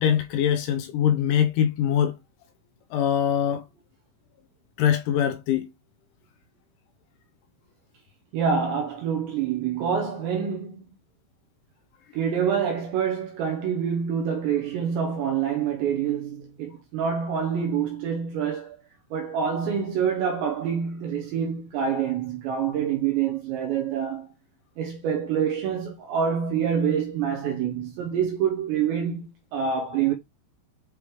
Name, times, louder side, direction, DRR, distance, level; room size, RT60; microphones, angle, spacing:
voice 1, 0.0-2.1 2.9-3.6 4.8-5.7, left 9 dB, 85° left, 2.8 m, -23 dB
voice 2, 8.3-10.8 12.1-18.8 19.1-24.3 24.8-30.1, right 7 dB, 85° right, 2.6 m, -26 dB
9.2 x 3.1 x 3.3 m
omnidirectional pair, 6.0 m